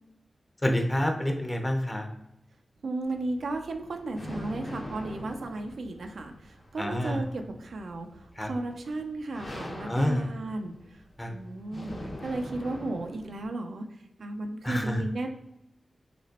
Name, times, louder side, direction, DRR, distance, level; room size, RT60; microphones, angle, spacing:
voice 1, 0.6-2.0 6.8-7.2 8.4-8.5 9.8-10.2 11.2-11.3 14.6-15.0, left 1 dB, 15° left, 3 dB, 0.8 m, -27 dB
voice 2, 2.8-11.0 11.3-11.9 12.2-13.9 14.2-15.3, right 2 dB, 80° right, 5 dB, 0.5 m, -34 dB
sound 1, 3.0-13.4, left 1 dB, 50° left, 1.1 m, -43 dB
6.1 x 2.9 x 2.9 m, 0.84 s
wide cardioid pair, 100°, 0 cm